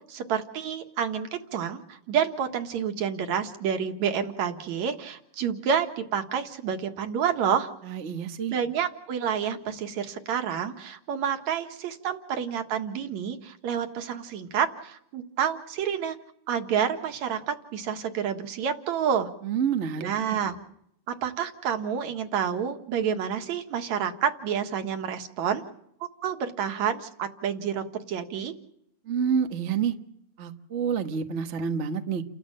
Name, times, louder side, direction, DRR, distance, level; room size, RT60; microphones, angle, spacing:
voice 1, 0.1-7.7 8.5-16.2 16.5-19.3 20.0-20.6 21.1-25.6 26.2-28.5, right 8 dB, 65° right, 7 dB, 2.8 m, -29 dB
voice 2, 7.8-8.5 19.4-20.4 29.0-30.0 30.4-32.2, right 7 dB, 85° right, 7 dB, 0.6 m, -28 dB
30.0 x 13.0 x 8.9 m, 0.73 s
omnidirectional pair, 3.6 m